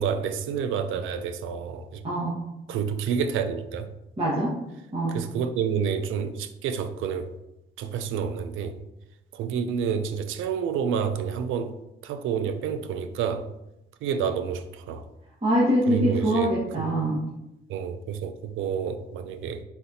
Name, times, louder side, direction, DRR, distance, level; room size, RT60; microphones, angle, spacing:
voice 1, 0.0-2.0 2.7-3.9 5.1-7.4 7.8-8.8 9.3-11.8 12.0-13.5 14.0-15.1 15.9-16.9 17.7-19.6, right 7 dB, 85° right, 10 dB, 0.5 m, -29 dB
voice 2, 2.0-2.4 4.2-4.5 4.9-5.2 15.4-17.2, equal, 30° right, -7 dB, 1.3 m, -24 dB
4.2 x 4.0 x 2.7 m, 0.88 s
cardioid pair, 90°, 20 cm